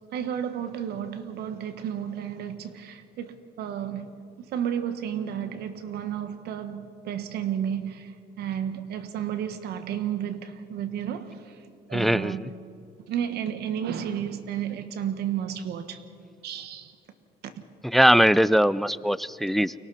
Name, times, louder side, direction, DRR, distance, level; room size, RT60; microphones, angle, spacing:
voice 1, 0.1-4.2 4.5-11.6 11.9-12.4 13.1-16.0 16.4-16.9 17.4-17.5, right 9 dB, 75° right, 1.6 m, -32 dB
voice 2, 11.9-12.5 17.8-19.7, equal, ahead, 0.4 m, -21 dB
29.5 x 24.0 x 4.2 m
cardioid pair, 110°, 17 cm